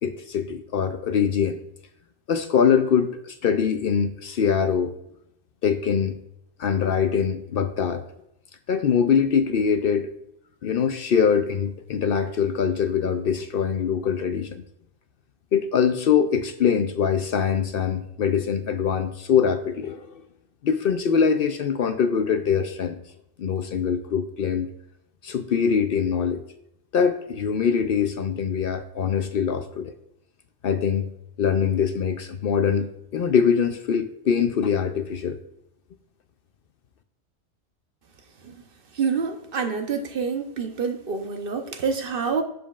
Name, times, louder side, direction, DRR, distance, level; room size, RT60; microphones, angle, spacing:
voice 1, 0.0-1.6 2.3-4.9 5.6-6.2 6.6-8.0 8.7-10.1 10.6-14.6 15.5-20.2 20.6-23.0 23.4-24.7 25.2-26.4 26.9-29.9 30.6-31.1 31.4-35.4, left 7 dB, 60° left, 9 dB, 0.7 m, -23 dB
voice 2, 38.9-42.4, right 5 dB, 55° right, 6 dB, 0.9 m, -27 dB
7.7 x 6.8 x 2.4 m, 0.79 s
omnidirectional pair, 1.2 m